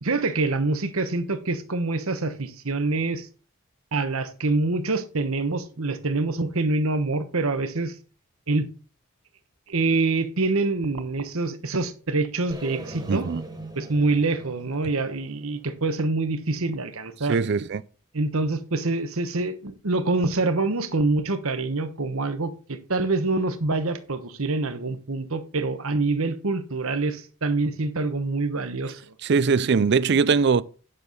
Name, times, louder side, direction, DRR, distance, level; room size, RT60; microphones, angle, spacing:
voice 1, 0.0-3.3 3.9-7.9 8.5-8.7 9.7-13.3 13.8-17.4 18.1-29.1, right 3 dB, 75° right, 1.1 m, -26 dB
sound 1, 12.5-16.5, right 1 dB, 20° right, 1.7 m, -41 dB
voice 2, 13.1-13.4 17.3-17.8 29.2-30.6, right 5 dB, 50° right, 0.4 m, -21 dB
9.9 x 6.8 x 4.0 m
head